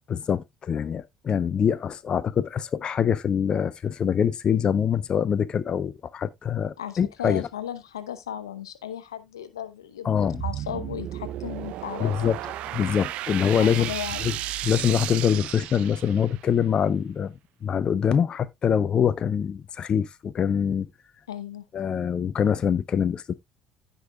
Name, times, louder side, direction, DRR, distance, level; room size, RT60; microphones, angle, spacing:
voice 1, 0.1-7.4 10.0-10.4 12.0-12.4 12.7-13.9 14.2-14.4 14.6-17.3 17.6-20.9 21.7-23.3, left 8 dB, 40° left, 0.6 m, -24 dB
voice 2, 6.8-10.1 10.4-12.3 13.6-14.3 21.3-21.6, left 10 dB, 85° left, 0.8 m, -35 dB
sound 1, 10.2-16.5, right 13 dB, 60° right, 0.6 m, -34 dB
15.5 x 5.4 x 2.2 m
hypercardioid pair, 60°, 2 cm